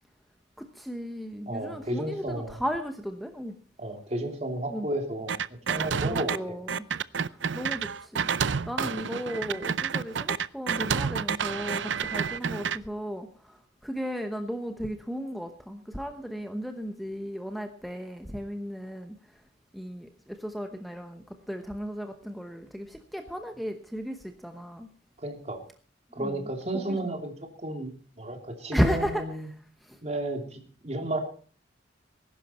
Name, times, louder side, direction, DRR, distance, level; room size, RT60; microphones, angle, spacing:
voice 1, 0.6-3.5 4.7-4.9 6.0-6.8 7.3-8.3 8.7-13.6 13.8-19.1 19.7-24.9 26.2-26.3 26.7-26.8 28.7-29.2 29.9-30.0, equal, ahead, 6 dB, 1.0 m, -34 dB
voice 2, 1.5-2.6 3.8-5.3 5.7-6.6 8.8-8.9 25.2-25.6 26.1-27.9 28.2-29.5 30.0-31.2, right 1 dB, 35° right, 4 dB, 2.8 m, -33 dB
sound 1, 5.3-6.4 6.7-12.8, right 6 dB, 80° right, 0.6 m, -29 dB
20.0 x 11.5 x 4.3 m, 0.41 s
head